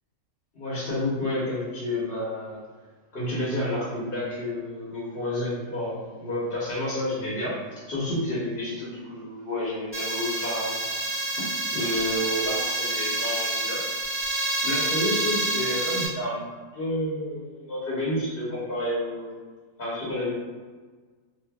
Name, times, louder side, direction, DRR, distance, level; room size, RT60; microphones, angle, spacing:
voice 1, 0.5-2.6 3.1-10.8 11.4-13.8 14.6-16.5 16.7-19.3 19.8-20.3, left 1 dB, 45° left, -8 dB, 1.0 m, -30 dB
sound 1, 9.9-16.1, right 1 dB, 15° left, 0.4 m, -28 dB
2.6 x 2.5 x 3.4 m, 1.4 s
omnidirectional pair, 1.5 m